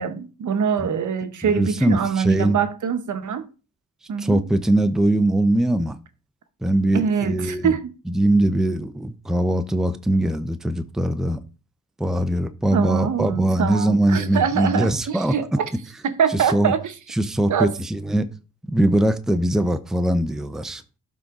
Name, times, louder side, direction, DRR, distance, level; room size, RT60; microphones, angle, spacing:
voice 1, 0.0-3.5 4.1-4.4 6.9-7.9 12.7-15.6 16.0-16.9 17.5-17.7, right 7 dB, 60° right, 1.1 m, -24 dB
voice 2, 1.5-2.6 4.2-6.0 6.6-7.7 8.1-11.4 12.0-15.4 16.3-16.7 17.2-18.3 18.7-20.8, right 1 dB, ahead, 0.7 m, -21 dB
12.0 x 4.0 x 3.7 m
cardioid pair, 80°, 33 cm